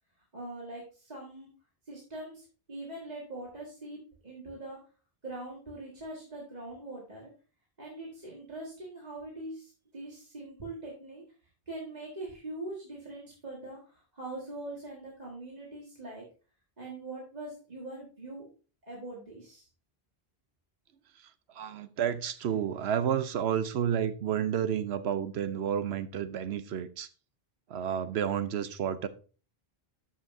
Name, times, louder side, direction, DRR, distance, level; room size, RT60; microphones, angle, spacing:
voice 1, 0.3-1.5 1.9-4.0 4.2-4.8 5.2-7.3 7.8-11.2 11.7-16.2 16.8-18.5 18.8-19.7, right 2 dB, 40° right, 2.0 m, -42 dB
voice 2, 21.6-27.1 27.7-29.1, right 9 dB, 75° right, 0.9 m, -30 dB
13.0 x 5.6 x 2.7 m
omnidirectional pair, 1.1 m